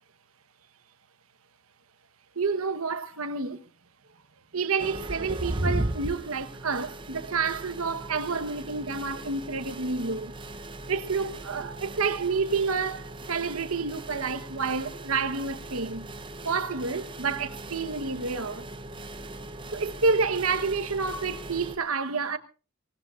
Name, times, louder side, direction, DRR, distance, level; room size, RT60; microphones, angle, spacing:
voice 1, 2.3-3.6 4.5-10.3 10.9-16.1 16.4-18.7 19.7-22.4, right 4 dB, 90° right, 1.2 m, -29 dB
sound 1, 4.8-21.8, right 1 dB, 25° right, 0.8 m, -38 dB
23.5 x 18.5 x 2.5 m
head